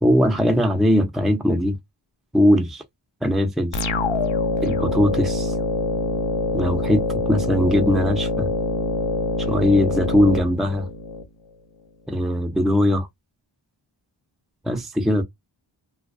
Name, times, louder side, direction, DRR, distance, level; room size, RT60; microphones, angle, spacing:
voice 1, 0.0-1.8 2.3-2.8 3.2-3.8 4.6-5.5 6.5-8.5 9.5-10.9 12.1-13.1 14.6-15.2, left 1 dB, ahead, 0.6 m, -20 dB
sound 1, 3.7-11.2, left 3 dB, 65° left, 0.7 m, -24 dB
2.2 x 2.2 x 2.5 m
cardioid pair, 50°, 49 cm